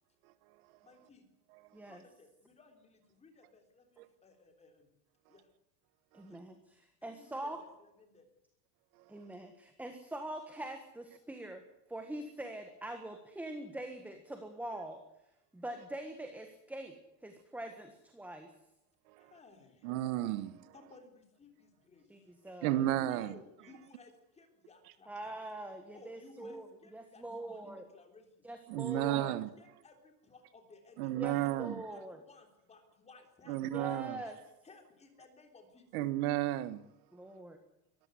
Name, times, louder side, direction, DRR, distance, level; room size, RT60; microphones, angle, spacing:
voice 1, 0.8-1.3 1.9-4.9 5.3-5.5 6.2-6.4 7.0-8.3 19.2-19.9 20.7-22.3 23.1-25.3 25.9-28.5 28.9-29.3 29.6-31.5 31.8-33.6 33.8-34.4 34.6-35.9, left 3 dB, 15° left, 3.6 m, -59 dB
voice 2, 6.1-7.6 9.1-11.6 11.9-15.0 15.5-16.9 17.2-18.5 22.1-22.9 25.1-26.7 26.9-27.9 28.4-29.4 31.1-32.2 33.7-34.4 37.1-37.6, right 1 dB, 5° right, 1.5 m, -43 dB
voice 3, 19.8-20.7 22.6-23.3 28.7-29.5 31.0-31.8 33.5-34.2 35.9-36.8, right 14 dB, 70° right, 1.3 m, -33 dB
22.5 x 14.5 x 9.5 m
cardioid pair, 175°, 45 cm